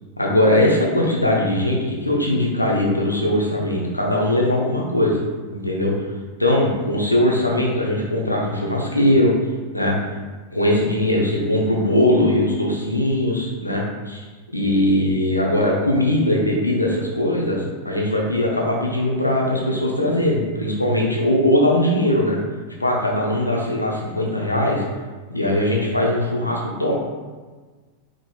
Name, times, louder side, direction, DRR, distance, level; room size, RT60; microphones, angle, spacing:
voice 1, 0.2-5.2 5.5-5.9 6.4-9.5 9.7-10.0 10.5-14.2 14.5-22.4 22.8-24.8 25.3-27.0, left 1 dB, 85° left, -2 dB, 0.8 m, -20 dB
5.0 x 3.8 x 2.3 m, 1.4 s
figure-of-eight pair, 90°, 0 cm